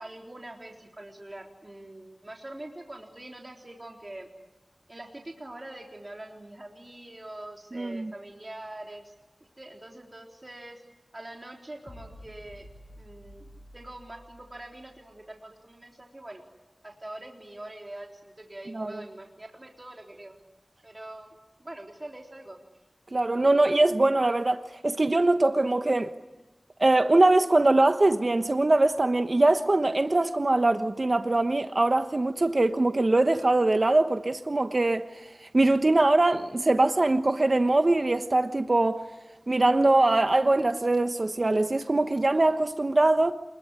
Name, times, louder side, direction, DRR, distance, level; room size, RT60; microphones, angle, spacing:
voice 1, 0.0-4.3 4.9-9.1 9.4-10.8 11.1-12.7 13.0-13.4 13.7-16.4 16.8-20.4 20.8-22.6, right 1 dB, 40° right, 3.8 m, -44 dB
voice 2, 7.7-8.1 18.7-18.9 23.1-26.1 26.8-35.0 35.5-39.0 39.5-43.3, right 2 dB, 55° right, 1.2 m, -22 dB
sound 1, 11.9-15.3, equal, 85° left, 7.8 m, -50 dB
27.5 x 22.0 x 9.8 m
wide cardioid pair, 40°, 0 cm